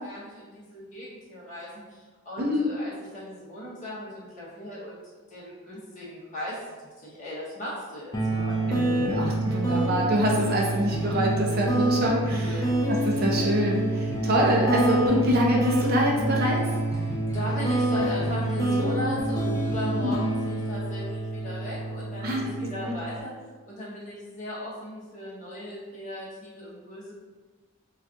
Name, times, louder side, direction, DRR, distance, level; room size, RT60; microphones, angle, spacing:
voice 1, 0.0-5.0 5.3-8.6 12.3-12.7 17.0-23.3 23.6-27.1, equal, 35° left, -8 dB, 0.8 m, -37 dB
voice 2, 2.4-2.7 8.6-16.6 20.0-20.2 22.2-22.4 22.8-22.9, equal, 45° right, -2 dB, 0.5 m, -25 dB
sound 1, 8.1-23.2, right 1 dB, 15° left, 0.3 m, -27 dB
2.4 x 2.3 x 3.6 m, 1.4 s
head